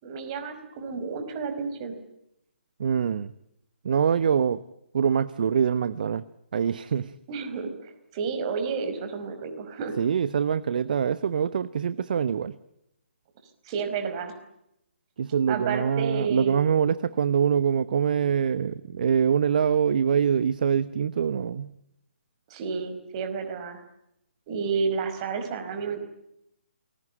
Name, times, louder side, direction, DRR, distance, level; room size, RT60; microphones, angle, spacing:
voice 1, 0.0-1.9 7.3-10.0 13.6-14.3 15.5-16.6 22.5-23.8 24.5-26.0, right 5 dB, 30° right, 7 dB, 4.9 m, -31 dB
voice 2, 2.8-3.3 3.8-4.6 4.9-6.2 6.5-7.1 10.0-12.6 15.2-21.7, right 7 dB, 45° right, 16 dB, 1.0 m, -24 dB
29.0 x 21.5 x 8.7 m, 0.81 s
figure-of-eight pair, 140°, 6 cm